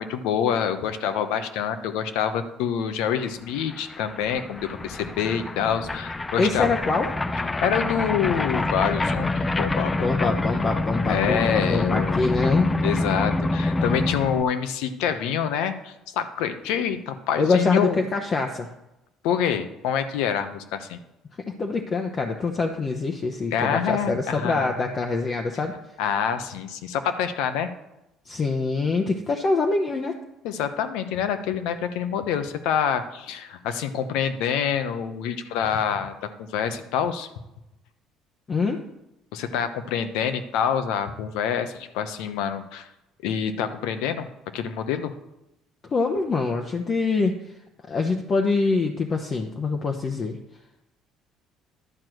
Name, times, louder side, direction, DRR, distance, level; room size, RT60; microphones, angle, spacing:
voice 1, 0.0-6.7 7.6-10.3 11.1-12.2 12.8-18.0 19.2-21.0 23.5-24.8 26.0-27.7 30.4-37.3 39.3-42.9 43.2-44.3 44.5-45.1, left 8 dB, 80° left, 10 dB, 0.9 m, -26 dB
sound 1, 3.3-3.4 3.5-14.4, left 2 dB, 20° left, 0.6 m, -26 dB
voice 2, 6.4-7.1 9.9-12.7 17.4-18.7 21.6-25.7 28.2-30.2 38.5-38.8 45.9-47.4 47.9-50.4, left 3 dB, 40° left, 3 dB, 1.0 m, -24 dB
11.0 x 4.6 x 7.8 m, 0.91 s
supercardioid pair, 90°, 0 cm